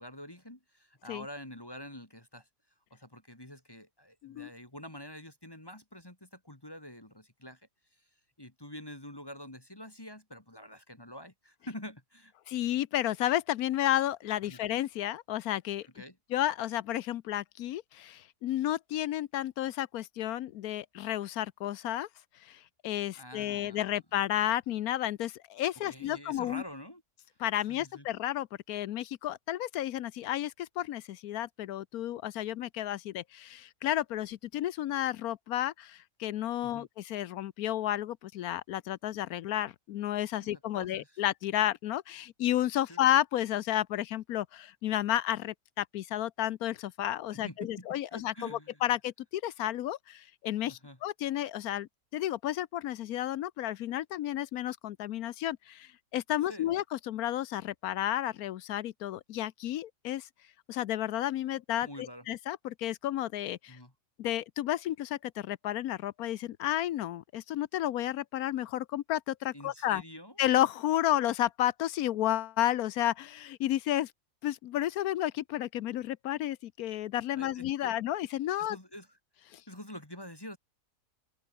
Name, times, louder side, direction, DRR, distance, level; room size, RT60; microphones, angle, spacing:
voice 1, 0.0-2.5 2.9-7.6 8.4-12.3 14.5-14.6 15.9-16.2 23.2-24.0 25.9-27.0 27.7-28.1 36.6-36.9 40.4-41.2 42.9-43.0 47.3-48.8 50.7-51.0 56.5-56.7 61.8-62.3 63.7-63.9 69.5-70.4 77.3-77.9 78.6-79.2 79.7-80.6, left 1 dB, 15° left, 2.4 m, -47 dB
voice 2, 12.5-15.9 16.3-22.1 22.4-26.6 27.4-60.3 60.7-63.8 64.2-70.0 70.4-74.1 74.4-78.8 79.5-79.6, left 13 dB, 75° left, 1.1 m, -32 dB
omnidirectional pair, 1.6 m